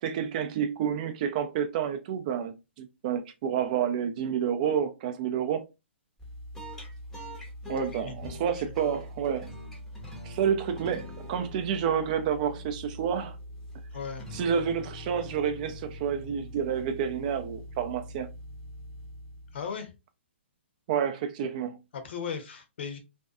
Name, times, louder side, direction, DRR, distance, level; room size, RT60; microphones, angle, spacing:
voice 1, 0.0-5.6 7.7-9.5 10.2-13.4 14.3-18.3 20.9-21.8, right 8 dB, 40° right, 0.4 m, -29 dB
sound 1, 6.2-19.8, left 1 dB, 5° left, 0.6 m, -43 dB
voice 2, 13.9-14.2 19.5-19.9 21.9-23.0, left 6 dB, 60° left, 0.7 m, -36 dB
2.6 x 2.2 x 2.3 m
hypercardioid pair, 135°, 7 cm